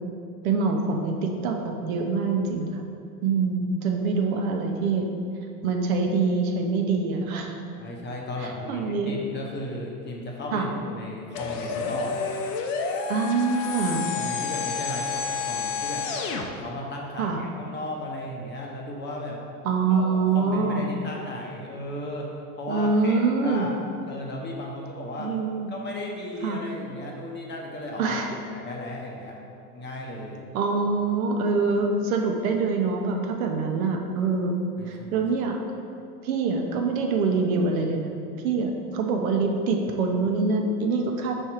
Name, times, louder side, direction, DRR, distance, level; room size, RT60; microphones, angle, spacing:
voice 1, 0.4-2.8 3.2-5.1 5.6-7.6 8.7-9.2 10.5-10.7 13.1-14.1 17.2-17.4 19.6-20.9 22.7-23.7 25.2-25.7 26.4-26.6 28.0-28.3 30.5-34.6 34.9-35.6 36.2-41.4, right 4 dB, 65° right, 2 dB, 0.9 m, -25 dB
voice 2, 7.8-12.3 13.7-13.8 14.1-16.1 16.6-19.4 19.9-22.3 22.6-23.7 24.0-25.3 25.7-28.2 28.5-29.4 29.7-30.5 34.8-35.2, left 1 dB, 25° left, -1 dB, 0.8 m, -35 dB
sound 1, 11.3-16.5, left 5 dB, 55° left, 0.8 m, -30 dB
5.0 x 4.4 x 4.4 m, 2.5 s
hypercardioid pair, 105°, 46 cm